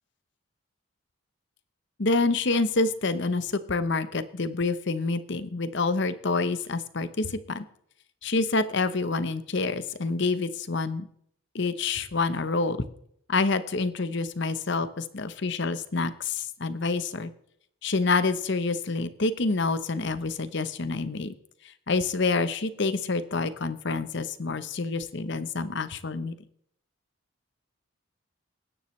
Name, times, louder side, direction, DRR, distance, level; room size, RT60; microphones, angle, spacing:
voice 1, 2.0-7.6 8.2-11.1 11.5-12.8 13.3-17.3 17.8-21.3 21.6-26.3, left 3 dB, 55° left, 13 dB, 0.8 m, -27 dB
20.0 x 10.0 x 3.2 m, 0.69 s
head